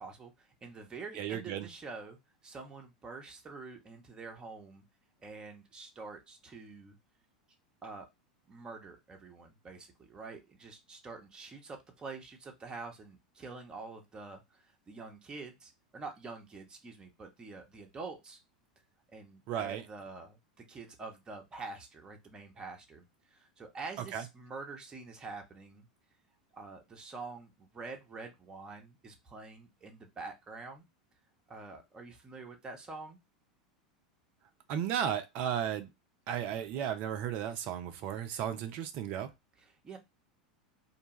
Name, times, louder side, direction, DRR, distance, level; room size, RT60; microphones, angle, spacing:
voice 1, 0.0-4.8 5.2-7.0 7.8-8.1 8.5-18.4 19.1-25.9 26.5-30.8 31.5-33.2 39.8-40.0, right 4 dB, 20° right, 0.8 m, -46 dB
voice 2, 1.2-1.7 19.5-19.8 24.1-24.2 34.7-35.9 36.3-39.3, right 9 dB, 45° right, 0.5 m, -34 dB
2.5 x 2.2 x 2.9 m
figure-of-eight pair, 85°, 4 cm